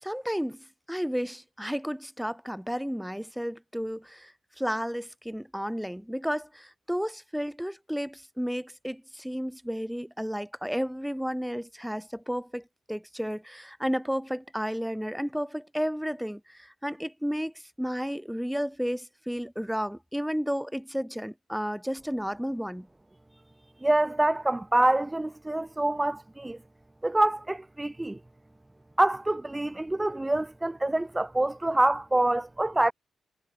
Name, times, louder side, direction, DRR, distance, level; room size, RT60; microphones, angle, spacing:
voice 1, 0.0-17.5 17.8-22.9, equal, ahead, 2.4 m, -32 dB
voice 2, 23.8-26.6 27.0-28.2 29.0-32.9, right 1 dB, 15° right, 0.7 m, -26 dB
supercardioid pair, 45°, 0 cm